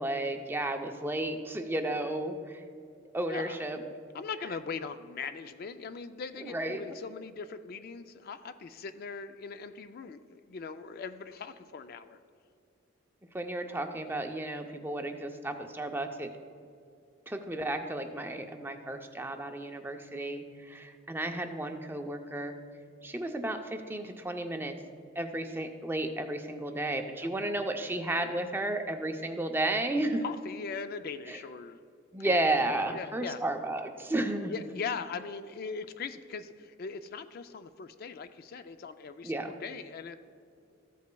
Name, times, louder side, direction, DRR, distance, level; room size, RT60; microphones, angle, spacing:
voice 1, 0.0-2.6 3.1-3.8 6.4-6.8 13.3-16.3 17.3-22.6 23.0-24.8 25.2-30.2 31.3-31.4 32.1-34.5 39.2-39.5, right 1 dB, 10° right, 5 dB, 0.5 m, -33 dB
voice 2, 3.3-3.6 4.1-12.2 27.1-27.3 30.2-31.8 32.2-32.3 32.9-33.4 34.5-40.2, left 5 dB, 50° left, 10 dB, 0.4 m, -40 dB
14.0 x 8.3 x 2.2 m, 2.4 s
head